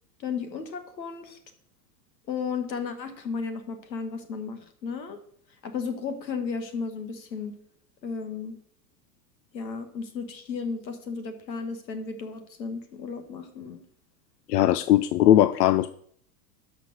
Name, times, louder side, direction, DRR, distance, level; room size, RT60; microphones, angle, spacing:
voice 1, 0.2-1.4 2.3-5.2 5.6-7.5 8.0-8.6 9.5-13.8, left 5 dB, 90° left, 9 dB, 1.8 m, -34 dB
voice 2, 14.5-15.9, left 12 dB, 75° left, 15 dB, 0.7 m, -19 dB
12.5 x 5.2 x 6.3 m, 0.63 s
hypercardioid pair, 105°, 50 cm